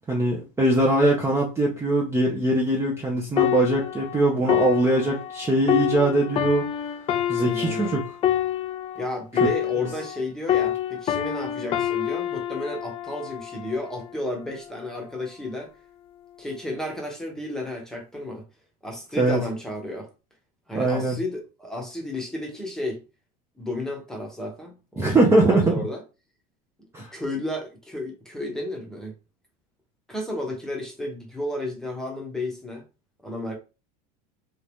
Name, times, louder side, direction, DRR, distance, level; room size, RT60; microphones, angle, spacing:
voice 1, 0.1-6.7 7.3-8.0 9.8-9.9 19.2-19.4 20.7-21.2 25.0-25.7 26.9-27.1, right 2 dB, 15° right, 0.6 m, -21 dB
sound 1, 3.4-10.2 10.5-14.1 14.7-14.9, left 11 dB, 30° left, 0.3 m, -27 dB
voice 2, 7.4-8.0 9.0-15.7 16.4-18.4 18.8-20.1 20.7-23.0 23.6-26.0 26.8-29.1 30.1-32.8 33.2-33.6, left 1 dB, 5° left, 1.0 m, -33 dB
2.8 x 2.5 x 3.4 m
supercardioid pair, 125°, 21 cm